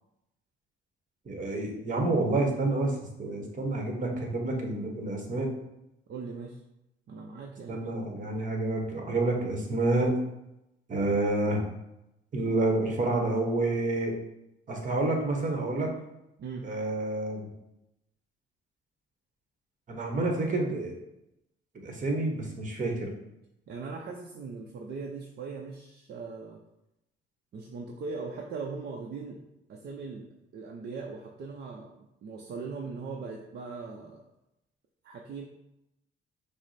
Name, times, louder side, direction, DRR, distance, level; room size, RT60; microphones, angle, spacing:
voice 1, 1.2-5.5 7.7-10.2 10.9-11.6 12.3-14.2 14.7-15.9 16.6-17.5 19.9-21.0 21.7-23.1, right 2 dB, 40° right, 2 dB, 1.1 m, -28 dB
voice 2, 6.1-6.6 7.1-7.8 16.4-16.7 23.7-26.6 27.5-29.4 29.7-34.3 35.0-35.5, right 4 dB, 55° right, 0 dB, 0.6 m, -40 dB
5.9 x 2.1 x 4.1 m, 0.88 s
cardioid pair, 90°, 20 cm